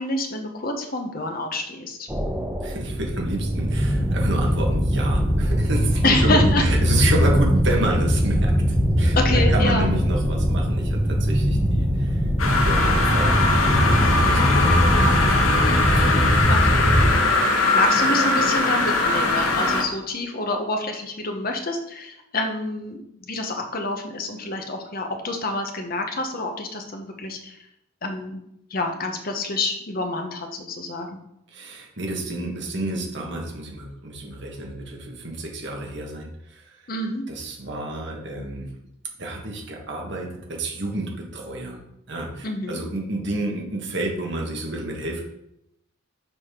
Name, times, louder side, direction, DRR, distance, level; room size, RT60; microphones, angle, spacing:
voice 1, 0.0-2.1 6.0-6.6 9.1-9.9 16.5-17.0 17.5-27.6 28.0-28.4 28.7-31.2 36.9-37.2 42.4-42.8, left 2 dB, 45° left, 4 dB, 0.9 m, -27 dB
sound 1, 2.1-17.1, equal, 10° right, 0.9 m, -21 dB
voice 2, 2.6-15.5 15.9-16.7 31.5-36.8 37.3-38.7 39.2-41.8 42.1-45.2, right 2 dB, 55° right, 0 dB, 1.5 m, -30 dB
sound 2, 12.4-19.8, left 2 dB, 80° left, 1.0 m, -21 dB
6.1 x 5.1 x 3.7 m, 0.80 s
head